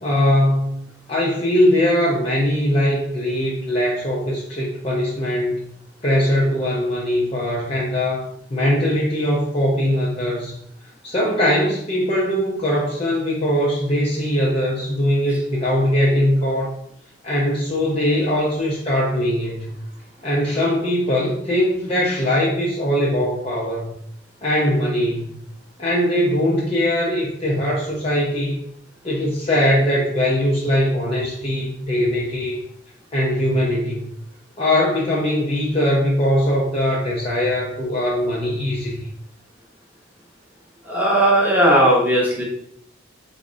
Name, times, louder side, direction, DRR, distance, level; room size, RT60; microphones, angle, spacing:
voice 1, 0.0-0.8 1.1-5.7 6.0-8.2 8.5-10.5 11.0-16.7 17.2-19.7 20.2-23.9 24.4-25.4 25.8-28.6 29.0-32.6 33.1-34.1 34.6-39.0, left 1 dB, 30° left, -5 dB, 0.5 m, -21 dB
voice 2, 40.9-42.4, right 1 dB, 10° right, -4 dB, 0.7 m, -16 dB
3.4 x 2.1 x 3.7 m, 0.70 s
head